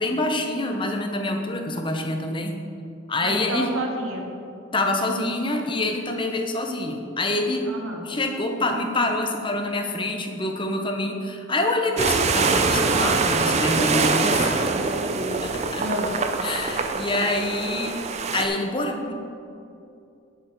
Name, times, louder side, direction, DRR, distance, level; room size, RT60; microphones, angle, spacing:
voice 1, 0.0-2.6 3.1-3.7 4.7-7.7 8.0-14.6 15.7-15.8 16.4-18.0 18.3-19.1, left 2 dB, 25° left, 4 dB, 0.8 m, -26 dB
voice 2, 3.2-4.3 7.6-8.0 14.7-15.4 15.8-16.1, right 1 dB, 75° right, 1 dB, 1.4 m, -30 dB
sound 1, 12.0-18.5, right 4 dB, 30° right, 0.5 m, -24 dB
10.0 x 8.1 x 4.5 m, 2.6 s
head